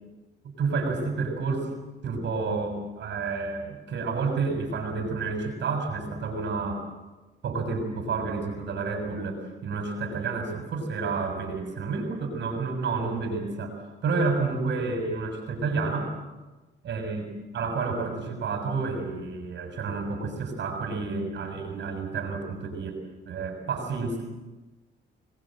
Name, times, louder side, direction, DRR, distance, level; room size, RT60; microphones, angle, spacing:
voice 1, 0.6-1.7 2.0-6.9 7.4-13.8 14.0-16.2 16.9-17.2 17.5-23.0 23.3-24.2, right 4 dB, 65° right, 3 dB, 7.1 m, -30 dB
26.5 x 22.0 x 7.8 m, 1.1 s
cardioid pair, 90°, 20 cm